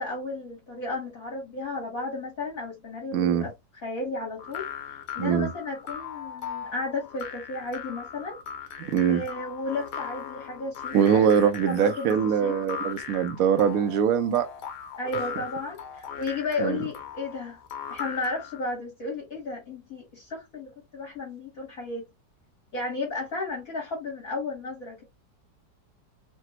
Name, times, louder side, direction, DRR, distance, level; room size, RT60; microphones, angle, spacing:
voice 1, 0.0-3.5 3.8-4.6 5.1-8.4 9.1-11.2 11.7-12.2 12.4-12.5 15.0-17.6 17.9-22.0 22.7-25.0, left 3 dB, 55° left, 1.5 m, -33 dB
voice 2, 3.1-3.5 5.2-5.5 8.8-9.2 10.9-14.5 16.6-16.8, right 8 dB, 65° right, 0.9 m, -23 dB
sound 1, 4.4-18.6, left 7 dB, 75° left, 1.3 m, -39 dB
3.3 x 2.2 x 2.8 m
omnidirectional pair, 1.9 m